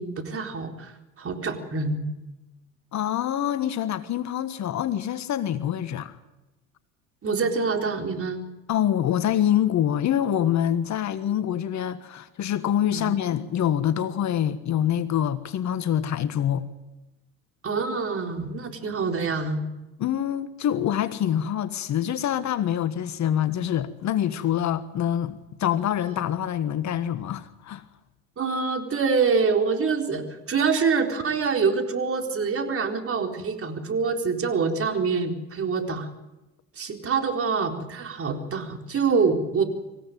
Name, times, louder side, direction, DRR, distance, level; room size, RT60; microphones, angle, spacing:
voice 1, 0.0-2.0 7.2-8.4 12.9-13.1 17.6-19.6 28.4-36.1 36.8-39.6, right 5 dB, 35° right, 4.3 m, -25 dB
voice 2, 2.9-6.1 8.7-16.7 20.0-27.8, left 10 dB, 45° left, 1.5 m, -25 dB
25.5 x 16.0 x 9.3 m
hypercardioid pair, 70°, 39 cm